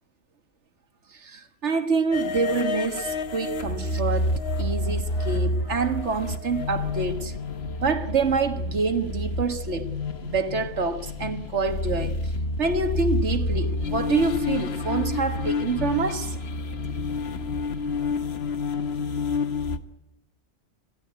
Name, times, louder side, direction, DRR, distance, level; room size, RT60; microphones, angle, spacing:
voice 1, 1.1-7.4 7.8-9.9 10.2-12.3 12.6-16.4, right 4 dB, 75° right, 1.9 m, -27 dB
sound 1, 2.1-19.8, left 3 dB, 60° left, 1.4 m, -29 dB
26.5 x 15.5 x 9.3 m
omnidirectional pair, 1.2 m